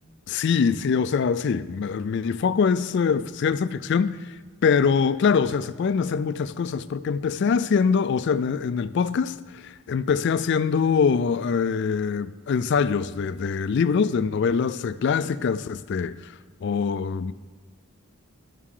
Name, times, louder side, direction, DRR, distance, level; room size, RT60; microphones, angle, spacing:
voice 1, 0.3-4.2 4.6-16.3 16.6-17.3, left 6 dB, 55° left, 0.3 m, -23 dB
12.5 x 6.4 x 3.8 m
head